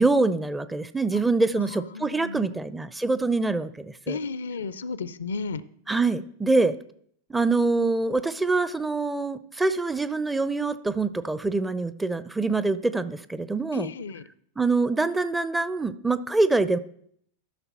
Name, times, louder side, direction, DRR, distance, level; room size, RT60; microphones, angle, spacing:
voice 1, 0.0-4.2 5.9-6.7 7.3-13.9 14.6-16.8, right 3 dB, 10° right, 14 dB, 0.4 m, -25 dB
voice 2, 1.6-2.6 4.1-5.6 13.7-14.2, left 4 dB, 65° left, 17 dB, 0.4 m, -34 dB
13.0 x 5.7 x 4.2 m, 0.65 s
figure-of-eight pair, 90°, 0 cm